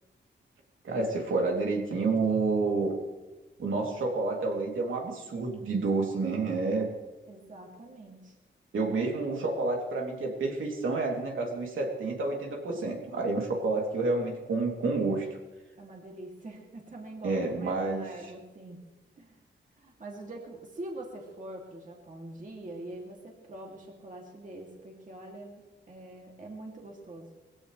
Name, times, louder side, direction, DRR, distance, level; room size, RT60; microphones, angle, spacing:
voice 1, 0.8-2.9 3.6-6.9 8.7-15.3 17.2-18.1, right 3 dB, 80° right, 0 dB, 3.2 m, -29 dB
voice 2, 7.3-8.4 15.8-18.8 19.2-19.4 19.8-27.3, right 1 dB, 40° right, 0 dB, 3.0 m, -44 dB
21.5 x 16.0 x 3.4 m, 1.1 s
wide cardioid pair, 100°, 20 cm